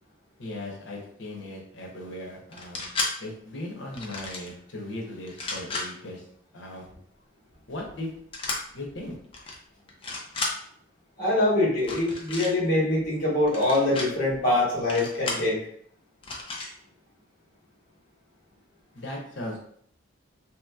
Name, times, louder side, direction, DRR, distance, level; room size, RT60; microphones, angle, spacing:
voice 1, 0.4-2.9 3.2-6.2 6.5-6.9 7.7-8.2 8.7-9.2 18.9-19.6, left 1 dB, 70° left, 0 dB, 0.9 m, -37 dB
sound 1, 2.5-3.1 3.9-4.5 5.3-5.9 8.3-8.6 9.3-9.5 9.9-10.5 11.8-12.5 13.5-14.1 14.9-15.5 16.2-16.7, left 3 dB, 30° left, 0.5 m, -32 dB
voice 2, 11.2-15.6, left 1 dB, 45° left, -5 dB, 1.4 m, -24 dB
3.3 x 3.0 x 2.3 m, 0.63 s
head